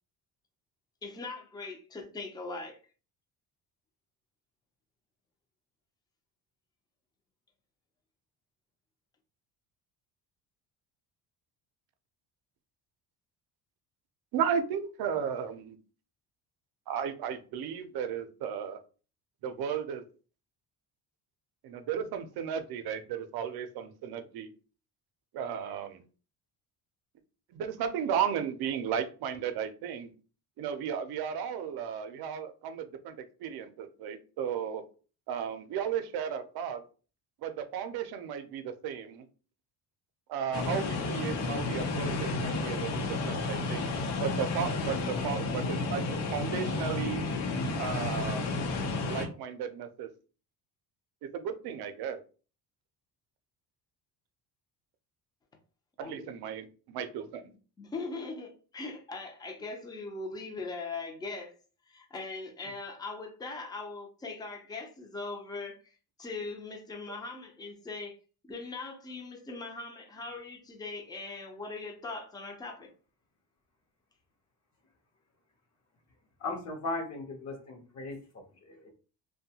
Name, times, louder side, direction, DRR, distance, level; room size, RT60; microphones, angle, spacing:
voice 1, 1.0-2.8 56.0-56.4 57.8-61.6 61.9-65.8 66.2-68.2 68.4-72.9, left 3 dB, 10° left, 0.4 m, -40 dB
voice 2, 14.3-15.8 16.9-18.8 19.4-20.0 21.6-24.5 25.3-26.0 27.5-30.1 30.6-34.8 35.3-36.8 37.4-39.3 40.3-43.9 44.2-47.2 47.8-48.5 49.1-50.1 51.2-52.2 56.0-57.4, right 8 dB, 65° right, 0.6 m, -34 dB
sound 1, 40.5-49.3, left 3 dB, 85° left, 0.8 m, -32 dB
voice 3, 76.4-78.9, left 2 dB, 45° left, 0.7 m, -38 dB
2.6 x 2.2 x 2.7 m
cardioid pair, 125°, 40 cm